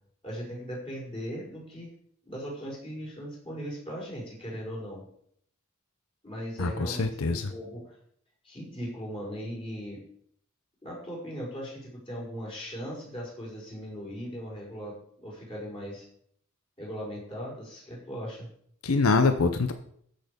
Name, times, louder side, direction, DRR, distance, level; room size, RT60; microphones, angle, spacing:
voice 1, 0.2-1.9 2.2-5.0 6.2-8.0 8.4-10.0 10.8-16.1 16.8-18.5, equal, 25° left, -5 dB, 5.6 m, -38 dB
voice 2, 6.6-7.5 18.8-19.7, left 3 dB, 85° left, 9 dB, 0.8 m, -24 dB
14.5 x 6.7 x 5.2 m, 0.66 s
head